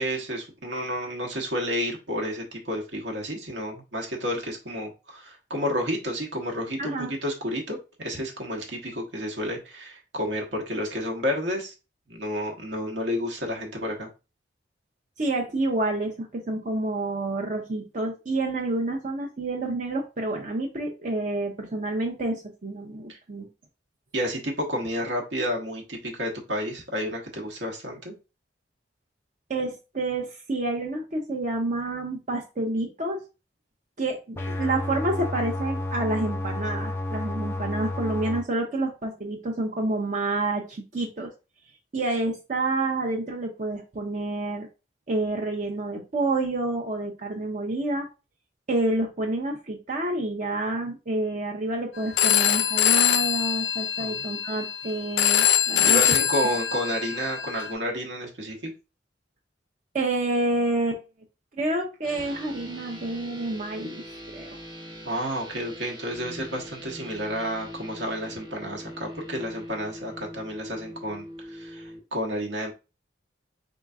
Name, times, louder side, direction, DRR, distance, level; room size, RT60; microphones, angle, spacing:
voice 1, 0.0-11.7 12.1-14.1 23.1-23.2 24.1-28.1 54.0-54.2 55.9-58.7 65.0-72.7, equal, 75° right, 0 dB, 1.1 m, -31 dB
voice 2, 6.8-7.1 15.2-23.5 29.5-33.2 34.0-41.3 41.9-44.7 45.1-48.1 48.7-56.1 59.9-61.0 61.6-64.1 64.3-64.6, right 2 dB, 45° right, 0 dB, 0.6 m, -28 dB
sound 1, 34.4-38.4, left 2 dB, 15° left, 0.5 m, -31 dB
Telephone, 52.2-57.7, left 10 dB, 90° left, 0.4 m, -23 dB
sound 2, 62.0-72.0, equal, 25° right, 1.0 m, -42 dB
3.9 x 3.8 x 2.3 m, 0.30 s
head